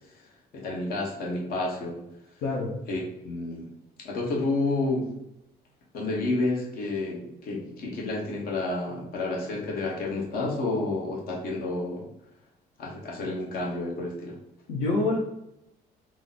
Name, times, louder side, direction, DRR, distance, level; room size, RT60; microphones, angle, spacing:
voice 1, 0.5-2.0 2.9-3.7 4.0-5.1 5.9-12.1 12.8-14.4, left 2 dB, 60° left, -3 dB, 1.1 m, -30 dB
voice 2, 2.4-2.8 14.7-15.2, left 3 dB, 85° left, -4 dB, 0.8 m, -26 dB
3.0 x 2.0 x 4.0 m, 0.81 s
cardioid pair, 110°, 17 cm